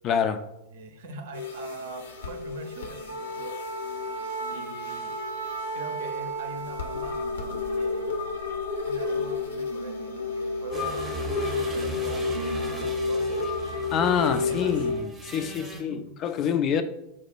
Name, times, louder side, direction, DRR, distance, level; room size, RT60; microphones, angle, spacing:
voice 1, 0.0-0.4 13.9-16.8, left 7 dB, 35° left, 9 dB, 0.3 m, -26 dB
voice 2, 0.7-3.5 4.5-5.1 5.7-7.2 7.7-8.3 8.8-11.0 11.3-12.3 12.5-13.7 14.3-14.8 15.6-16.2, right 3 dB, 60° right, 7 dB, 0.5 m, -43 dB
sound 1, 1.3-14.9, left 4 dB, 65° left, 0.6 m, -31 dB
Wind instrument woodwind instrument, 3.1-7.3, right 3 dB, 80° left, 1.1 m, -35 dB
sound 2, 10.7-15.8, right 4 dB, 15° right, 0.7 m, -38 dB
4.2 x 2.3 x 4.4 m, 0.84 s
figure-of-eight pair, 90°, 0 cm